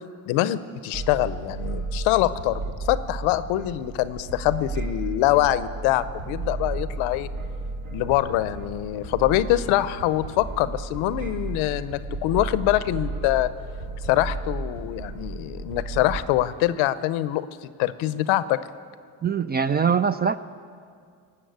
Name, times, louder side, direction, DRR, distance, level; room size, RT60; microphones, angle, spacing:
voice 1, 0.3-7.3 7.9-13.5 14.0-17.5 17.8-18.6, left 14 dB, 85° left, 15 dB, 0.8 m, -24 dB
sound 1, 0.9-16.2, right 3 dB, 75° right, 2.6 m, -33 dB
voice 2, 19.2-20.4, right 6 dB, 25° right, 13 dB, 0.4 m, -22 dB
19.0 x 7.5 x 9.2 m, 2.2 s
supercardioid pair, 80°, 47 cm